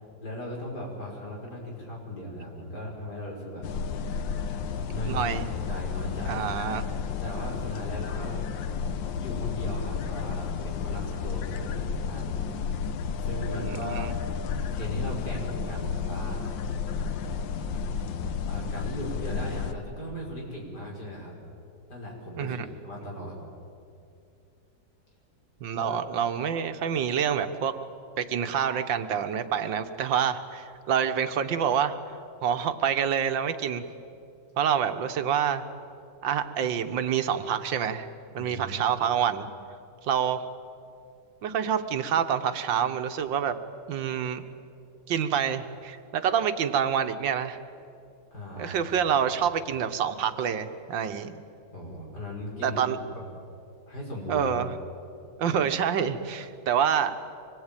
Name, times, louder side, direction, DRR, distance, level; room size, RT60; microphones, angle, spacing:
voice 1, 0.2-3.7 4.9-5.3 5.7-6.5 7.2-8.4 9.2-12.4 13.2-14.1 14.7-16.4 18.5-21.4 21.9-22.6 22.8-23.3 25.7-26.0 38.3-38.8 48.3-48.8 49.0-49.1 51.7-53.2 53.9-54.7, left 1 dB, 60° left, -2 dB, 6.2 m, -37 dB
sound 1, 3.6-19.7, left 6 dB, 85° left, 1.7 m, -32 dB
voice 2, 5.1-5.5 6.3-6.8 13.6-14.1 22.4-22.7 25.6-27.7 28.2-31.9 32.4-33.8 34.6-35.6 36.2-38.1 38.3-39.5 40.0-40.5 41.4-43.6 43.9-44.4 45.1-47.6 48.6-51.4 52.6-53.0 54.3-54.7 55.4-57.1, right 8 dB, 90° right, 9 dB, 1.8 m, -27 dB
25.5 x 20.0 x 9.0 m, 2.5 s
omnidirectional pair, 2.0 m